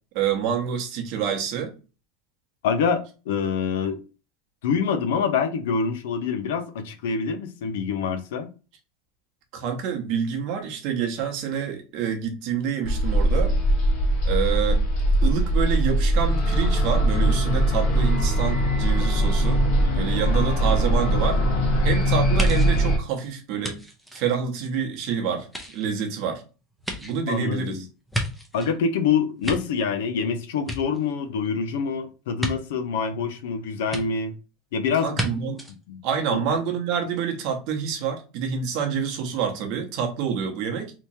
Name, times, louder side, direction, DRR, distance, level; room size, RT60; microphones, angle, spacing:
voice 1, 0.1-1.7 9.5-13.6 14.2-14.8 15.2-19.6 19.9-21.4 21.8-23.8 24.1-26.4 27.0-27.9 35.0-35.6 36.0-40.9, right 7 dB, 45° right, 0.9 m, -27 dB
voice 2, 2.6-4.0 4.6-8.5 27.3-27.8 28.5-34.3 34.7-35.2 35.9-36.0 36.3-36.4, left 6 dB, 80° left, 0.6 m, -26 dB
sound 1, 12.8-23.0, right 1 dB, 45° left, 1.1 m, -21 dB
sound 2, 22.4-25.0 25.4-28.8 29.2-30.3 30.6-31.5 32.4-32.5 33.9-34.0 35.1-35.3 35.6-35.7, equal, ahead, 0.6 m, -33 dB
3.5 x 2.9 x 2.7 m
supercardioid pair, 170°, 0 cm